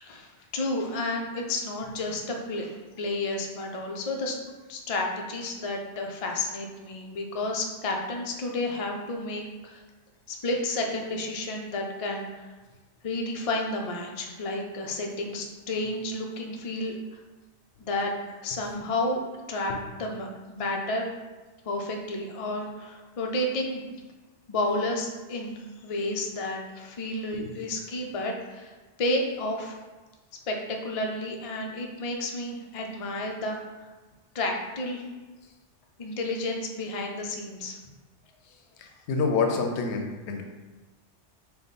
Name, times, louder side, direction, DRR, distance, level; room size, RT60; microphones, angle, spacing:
voice 1, 0.0-4.4 4.7-9.8 10.3-12.4 13.0-16.9 17.8-18.1 18.4-19.2 19.5-21.1 21.7-23.8 24.5-29.8 30.5-33.9 34.3-35.1 36.0-37.8, left 2 dB, 55° left, 1 dB, 0.4 m, -31 dB
voice 2, 38.8-40.4, left 4 dB, 75° left, 3 dB, 0.9 m, -27 dB
3.5 x 3.0 x 4.0 m, 1.2 s
omnidirectional pair, 1.2 m